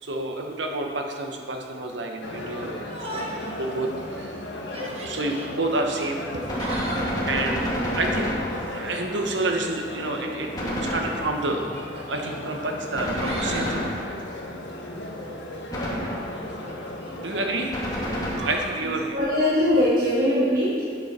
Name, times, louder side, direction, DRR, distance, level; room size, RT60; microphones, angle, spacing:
voice 1, 0.0-3.3 3.6-6.4 7.2-7.7 7.9-8.3 8.6-11.7 12.1-13.7 17.2-17.8 18.4-19.2, right 2 dB, 85° right, 3 dB, 1.2 m, -29 dB
sound 1, 2.2-17.7, left 1 dB, 75° left, 1.3 m, -36 dB
Yell, 2.8-3.5 4.0-4.1 4.6-5.5 6.3-7.2 8.9-9.4 10.5-10.6 11.5-12.3 12.9-13.8 16.5-17.1 18.3-18.8, right 1 dB, 30° right, 1.3 m, -37 dB
Gunshot gunfire, 6.5-9.0 10.5-11.6 13.0-14.4 15.7-16.5 17.7-18.9, equal, 20° left, 1.6 m, -29 dB
voice 2, 18.8-20.8, left 1 dB, 50° right, -9 dB, 1.8 m, -22 dB
11.5 x 7.7 x 4.4 m, 2.5 s
head